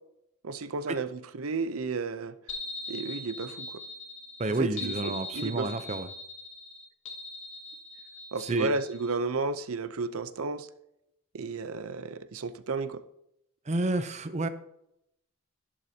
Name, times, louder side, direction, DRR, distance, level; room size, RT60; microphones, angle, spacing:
voice 1, 0.4-2.3 2.9-3.8 4.6-5.7 8.3-10.7 11.3-13.0, right 3 dB, 80° right, 0.7 m, -33 dB
sound 1, 2.5-9.1, left 2 dB, 60° left, 1.8 m, -41 dB
voice 2, 4.4-6.1 8.4-8.7 13.7-14.5, right 2 dB, 30° right, 0.6 m, -30 dB
12.0 x 11.5 x 2.8 m
head